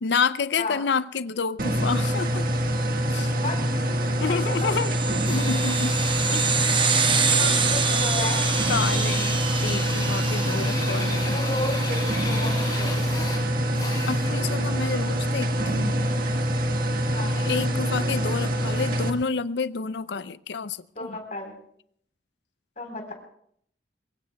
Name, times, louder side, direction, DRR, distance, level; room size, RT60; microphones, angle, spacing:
voice 1, 0.0-2.4 3.1-3.3 4.2-6.0 6.3-6.6 7.3-8.0 8.7-11.4 14.1-16.0 17.4-21.2, left 5 dB, 70° left, 0.5 m, -29 dB
sound 1, 1.6-19.1, equal, 50° right, 1.6 m, -25 dB
voice 2, 4.3-4.8 7.7-8.6 11.3-13.1 17.1-17.5 20.9-21.5 22.8-23.1, left 2 dB, 45° left, 4.1 m, -33 dB
sound 2, 4.5-11.3, right 6 dB, 25° right, 0.9 m, -27 dB
Drill, 5.2-14.5, left 3 dB, 25° left, 6.4 m, -35 dB
23.0 x 23.0 x 2.3 m
head